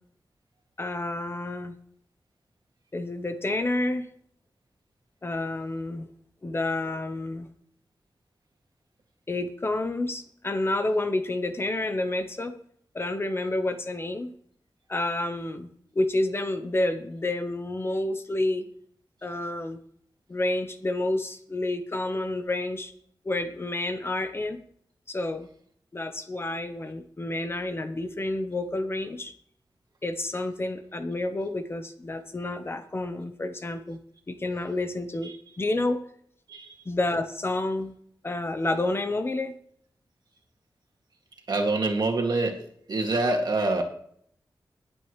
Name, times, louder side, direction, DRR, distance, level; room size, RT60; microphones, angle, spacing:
voice 1, 0.8-1.7 2.9-4.1 5.2-6.1 6.4-7.5 9.3-12.5 12.9-14.3 14.9-15.7 15.9-18.7 19.2-19.8 20.3-22.9 23.2-24.6 25.1-25.5 25.9-29.3 30.0-34.0 34.3-36.0 36.9-37.9 38.2-39.5, left 2 dB, 30° left, 8 dB, 0.9 m, -29 dB
voice 2, 41.5-43.8, right 2 dB, 60° right, 2 dB, 2.2 m, -26 dB
19.5 x 8.8 x 3.2 m, 0.63 s
wide cardioid pair, 150°, 8 cm